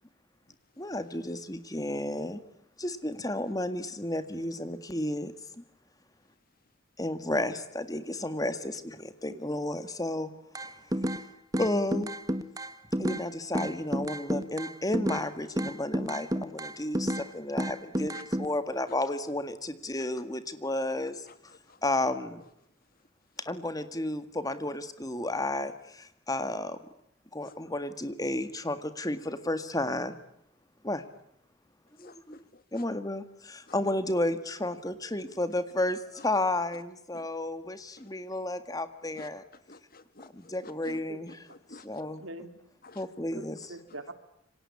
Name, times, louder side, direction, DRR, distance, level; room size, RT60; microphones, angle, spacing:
voice 1, 0.8-2.4 2.8-5.6 7.0-10.3 10.6-10.7 11.6-12.1 13.0-21.3 21.8-22.4 23.4-26.8 27.3-30.2 30.8-31.0 32.0-32.4 32.7-39.4 40.3-41.4 41.8-42.2 43.0-43.6, left 1 dB, 20° left, 11 dB, 1.8 m, -32 dB
sound 1, 10.5-11.2 11.5-13.2 13.5-15.3 15.6-17.3 17.6-18.5, right 1 dB, 20° right, 1.4 m, -30 dB
voice 2, 32.0-32.8 37.1-37.3 39.2-39.3 39.7-40.9 41.5-41.9 42.8-43.0, left 3 dB, 45° left, 12 dB, 1.9 m, -51 dB
voice 3, 40.8-41.2 42.2-42.6 43.3-44.1, right 1 dB, 85° right, 9 dB, 3.4 m, -44 dB
27.5 x 24.5 x 8.5 m, 0.76 s
head